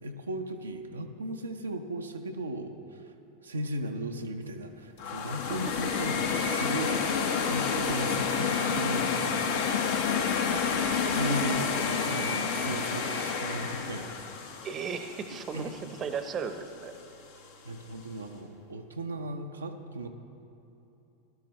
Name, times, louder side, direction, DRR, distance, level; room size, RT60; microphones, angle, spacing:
voice 1, 0.0-3.0 3.4-6.9 7.5-9.2 10.7-14.2 15.5-15.7 17.4-20.1, right 1 dB, 80° right, 3 dB, 0.6 m, -36 dB
sound 1, 5.0-16.0, left 6 dB, 60° left, 1.2 m, -29 dB
voice 2, 14.6-16.9, right 6 dB, 30° right, 9 dB, 0.8 m, -36 dB
17.0 x 12.0 x 3.1 m, 3.0 s
figure-of-eight pair, 90°, 0 cm